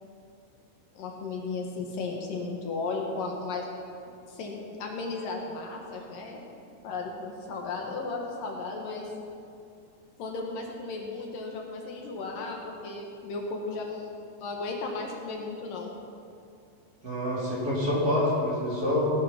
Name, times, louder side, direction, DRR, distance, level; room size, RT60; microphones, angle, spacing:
voice 1, 1.0-3.7 4.3-6.4 6.8-9.1 10.2-15.9, left 3 dB, 70° left, 0 dB, 3.1 m, -35 dB
voice 2, 17.0-19.1, left 1 dB, 25° right, -7 dB, 4.3 m, -26 dB
17.5 x 11.5 x 5.9 m, 2.4 s
omnidirectional pair, 4.1 m